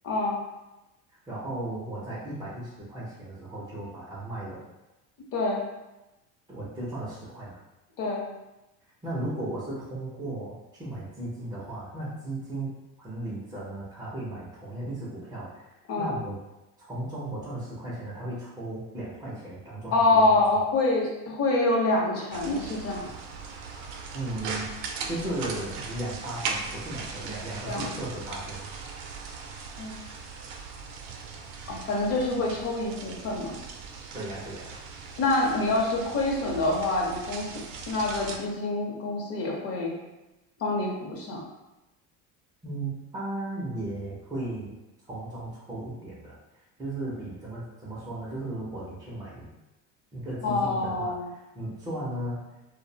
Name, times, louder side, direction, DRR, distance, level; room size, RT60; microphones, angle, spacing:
voice 1, 0.0-0.4 5.3-5.6 8.0-8.3 15.9-16.1 19.9-23.0 27.7-28.0 29.8-29.9 31.7-33.5 35.2-37.5 37.9-39.9 40.6-41.4 50.4-51.3, left 2 dB, 40° left, -2 dB, 0.6 m, -26 dB
voice 2, 1.3-4.6 6.5-7.6 9.0-12.7 13.0-16.4 16.8-20.6 24.1-24.7 25.1-28.7 34.1-34.7 42.6-44.7 45.1-46.4 46.8-49.5 50.1-52.4, right 1 dB, 10° right, -8 dB, 0.4 m, -36 dB
sound 1, 22.3-38.4, right 4 dB, 70° right, 0.5 m, -39 dB
2.5 x 2.0 x 2.6 m, 0.99 s
cardioid pair, 140°, 37 cm